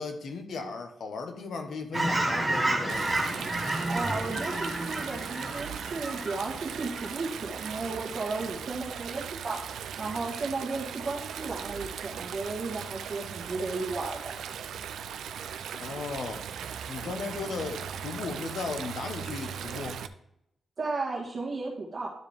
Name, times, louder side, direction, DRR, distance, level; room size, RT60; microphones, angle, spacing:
voice 1, 0.0-3.1 15.7-16.4 16.9-20.0, left 4 dB, 55° left, 5 dB, 1.2 m, -36 dB
Fowl / Chirp tweet, 1.9-7.8 8.2-8.4, right 1 dB, 10° right, 1.3 m, -31 dB
Stream, 2.9-20.1, right 8 dB, 90° right, 0.4 m, -38 dB
voice 2, 3.8-9.6 10.0-14.3 20.8-22.1, right 3 dB, 35° right, -5 dB, 1.8 m, -34 dB
12.0 x 4.9 x 3.4 m, 0.77 s
wide cardioid pair, 170°, 0 cm